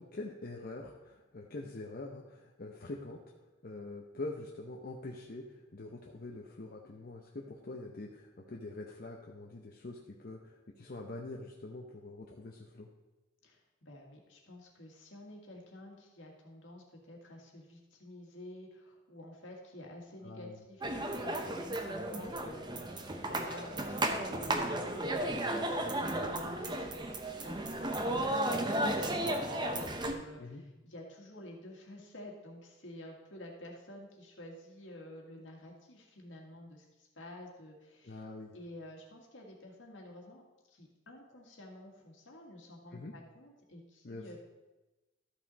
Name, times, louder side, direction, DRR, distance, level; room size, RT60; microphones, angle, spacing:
voice 1, 0.0-3.2 3.6-12.9 20.2-20.6 30.4-30.6 38.0-38.6 42.9-43.1 44.0-44.2, left 2 dB, 50° left, 0 dB, 0.8 m, -44 dB
voice 2, 13.4-38.2 38.5-40.4 40.7-44.4, left 1 dB, 70° left, 0 dB, 2.0 m, -50 dB
sound 1, 20.8-30.1, right 1 dB, 25° right, 0.8 m, -34 dB
13.0 x 6.0 x 4.1 m, 1.1 s
head